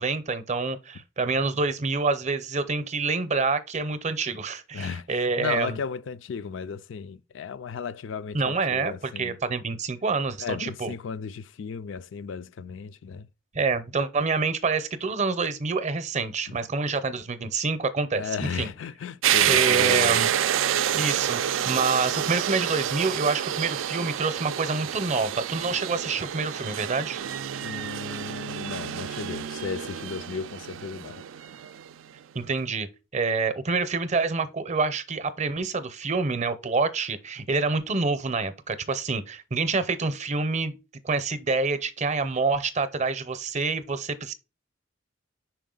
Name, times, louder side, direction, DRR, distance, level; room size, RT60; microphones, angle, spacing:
voice 1, 0.0-5.8 8.3-10.9 13.5-18.7 19.5-20.3 20.9-21.4 21.7-27.2 32.3-32.9 33.1-40.7 41.0-44.3, right 4 dB, 35° right, 0.6 m, -27 dB
voice 2, 4.7-9.4 10.4-13.3 16.5-16.6 18.1-20.2 27.6-31.2, left 6 dB, 75° left, 0.4 m, -35 dB
sound 1, 19.2-31.9, right 10 dB, 90° right, 0.4 m, -28 dB
5.4 x 4.5 x 3.8 m
head